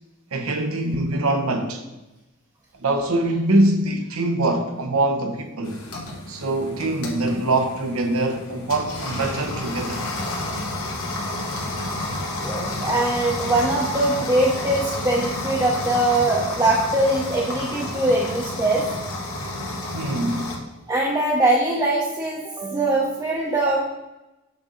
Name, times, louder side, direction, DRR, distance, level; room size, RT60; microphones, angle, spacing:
voice 1, 0.3-1.8 2.8-5.8 6.3-10.0 19.9-20.5, right 2 dB, 90° right, 0.9 m, -23 dB
sound 1, 5.6-20.6, left 1 dB, 75° left, 1.3 m, -30 dB
voice 2, 12.4-18.8 20.9-23.8, right 2 dB, 20° right, 0.6 m, -22 dB
6.9 x 3.9 x 3.8 m
head